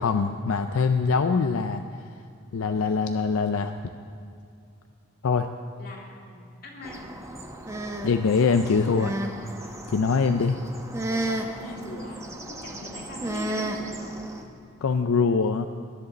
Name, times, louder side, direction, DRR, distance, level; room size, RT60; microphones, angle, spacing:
voice 1, 0.0-1.8 2.5-3.7 5.2-5.5 8.0-9.2 9.9-10.6 14.8-15.7, left 5 dB, 80° left, 7 dB, 0.5 m, -23 dB
voice 2, 5.8-7.1 11.6-14.6, left 1 dB, 45° left, -2 dB, 2.2 m, -42 dB
sound 1, 6.8-14.4, right 1 dB, 15° right, 0.8 m, -33 dB
19.5 x 10.5 x 4.1 m, 2.4 s
head